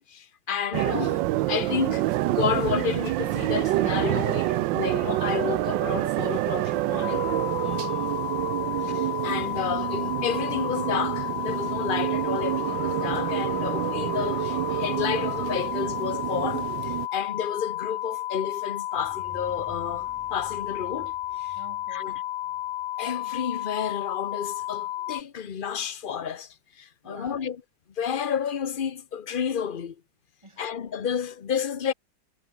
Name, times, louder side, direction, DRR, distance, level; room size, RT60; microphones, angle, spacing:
voice 1, 0.0-7.3 8.8-21.1 21.4-21.6 21.9-22.2 23.0-27.6 28.0-30.0 30.6-31.9, left 8 dB, 50° left, 0.6 m, -31 dB
sound 1, 0.7-17.1, right 16 dB, 75° right, 1.2 m, -27 dB
sound 2, 7.0-25.2, left 14 dB, 70° left, 1.2 m, -32 dB
voice 2, 7.6-8.4 21.6-22.2 27.0-27.5 30.4-30.6, right 2 dB, 15° right, 3.7 m, -46 dB
sound 3, 19.0-22.9, equal, 5° left, 4.1 m, -50 dB
omnidirectional pair, 2.2 m